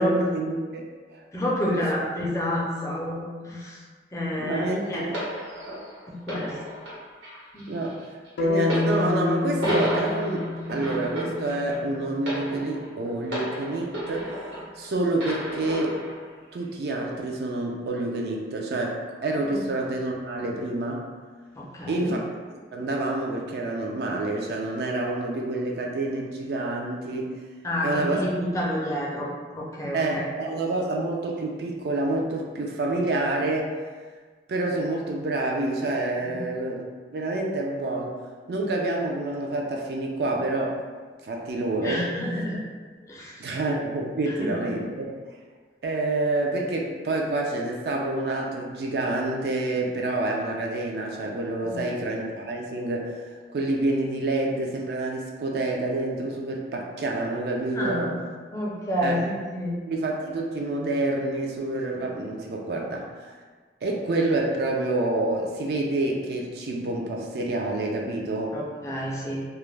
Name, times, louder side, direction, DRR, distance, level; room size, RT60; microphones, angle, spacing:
voice 1, 0.0-1.2 1.7-1.8 4.4-5.2 7.7-16.0 16.5-21.1 21.9-22.2 22.7-27.4 27.8-28.3 29.9-33.7 34.5-36.9 37.1-38.1 38.5-40.8 41.2-42.0 43.4-45.1 45.8-58.1 59.0-59.2 59.8-63.3 63.8-68.5, right 2 dB, 60° right, 0 dB, 0.3 m, -28 dB
voice 2, 1.3-3.8 4.1-5.2 6.1-6.6 7.5-7.9 19.5-19.7 21.5-22.2 27.6-30.3 36.2-36.4 41.8-42.7 43.1-43.6 44.3-44.7 51.6-51.9 57.7-58.2 58.5-59.8 68.5-69.4, equal, 15° left, -4 dB, 0.4 m, -29 dB
sound 1, 5.1-14.8 15.2-16.2 17.0-17.1, equal, 85° right, 1.1 m, -32 dB
sound 2, 8.4-12.4, left 3 dB, 85° left, 0.3 m, -29 dB
2.3 x 2.1 x 3.1 m, 1.5 s
head